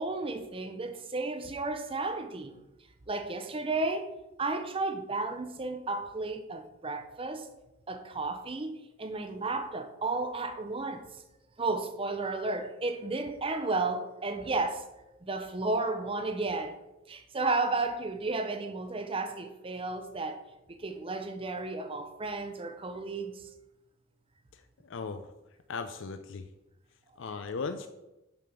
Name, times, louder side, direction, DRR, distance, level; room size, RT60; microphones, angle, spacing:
voice 1, 0.0-2.5 3.1-4.1 4.4-7.5 7.9-11.1 11.6-14.8 15.2-16.8 17.1-20.4 20.7-23.4, right 3 dB, 25° right, 0.6 m, -33 dB
voice 2, 24.5-25.3 25.7-26.5 27.2-27.9, left 4 dB, 65° left, 0.5 m, -37 dB
7.0 x 5.1 x 5.7 m
head